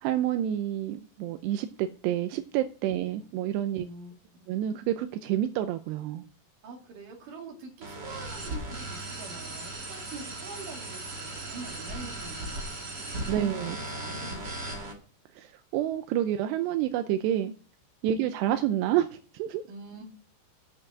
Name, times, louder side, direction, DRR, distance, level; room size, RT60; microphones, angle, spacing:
voice 1, 0.0-3.9 4.5-6.2 13.3-13.8 15.4-17.5 18.0-19.6, right 11 dB, 85° right, 2.8 m, -28 dB
voice 2, 2.9-3.2 3.7-4.5 6.6-14.9 18.1-18.3 19.7-20.0, right 3 dB, 55° right, 3.8 m, -45 dB
sound 1, 7.8-14.9, right 2 dB, 35° right, 1.9 m, -37 dB
8.5 x 6.8 x 7.3 m
omnidirectional pair, 4.9 m